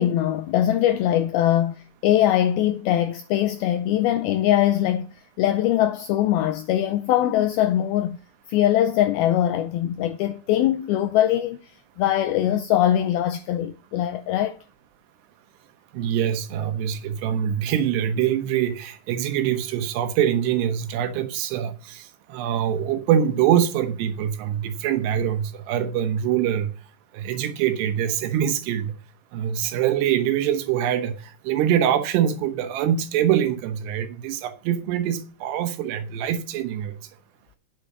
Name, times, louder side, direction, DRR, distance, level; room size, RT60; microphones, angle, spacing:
voice 1, 0.0-1.8 2.0-5.1 5.4-8.2 8.5-11.6 12.0-14.6, left 12 dB, 85° left, 2.2 m, -21 dB
voice 2, 15.9-26.7 27.1-29.0 29.3-36.9, right 10 dB, 75° right, 3.0 m, -24 dB
9.6 x 6.7 x 6.0 m
omnidirectional pair, 5.1 m